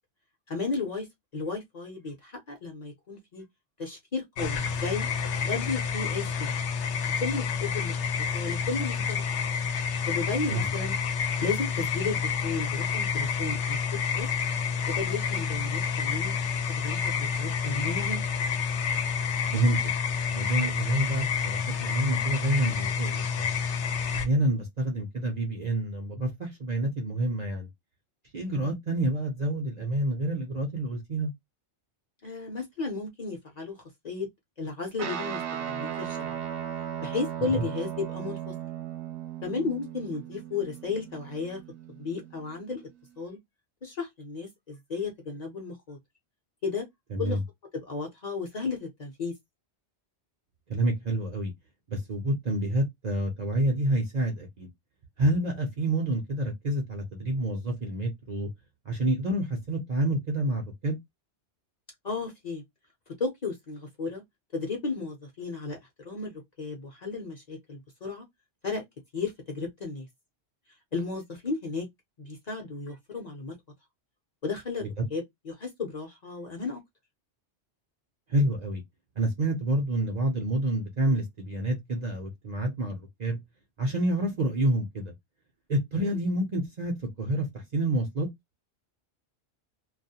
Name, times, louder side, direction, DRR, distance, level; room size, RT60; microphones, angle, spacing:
voice 1, 0.5-1.1 1.3-3.4 3.8-5.1 5.4-6.5 7.2-8.0 8.3-9.2 10.1-11.0 11.4-13.8 14.1-14.3 14.9-16.3 16.7-18.2 28.4-28.7 32.2-33.8 34.0-34.3 34.6-35.4 35.7-36.3 37.0-38.5 39.4-41.6 42.0-42.8 43.2-43.4 43.8-46.0 46.6-46.9 47.2-47.4 47.7-49.3 62.0-62.6 63.2-64.2 64.5-65.8 66.0-68.2 68.6-68.8 69.1-70.1 70.9-71.9 72.2-73.5 74.4-74.8 75.1-76.8 86.0-86.2, left 4 dB, 40° left, 0.7 m, -34 dB
sound 1, 4.4-24.3, left 6 dB, 80° left, 0.9 m, -29 dB
voice 2, 20.3-23.5 24.1-27.7 28.3-31.3 37.4-37.6 47.1-47.4 50.7-51.5 51.9-54.7 55.2-58.5 58.9-61.0 75.0-75.1 78.3-78.8 79.2-83.4 83.8-85.1 85.7-88.3, right 1 dB, 45° right, 0.6 m, -28 dB
Guitar, 35.0-42.6, right 9 dB, 75° right, 0.9 m, -37 dB
2.3 x 2.1 x 2.7 m
omnidirectional pair, 1.2 m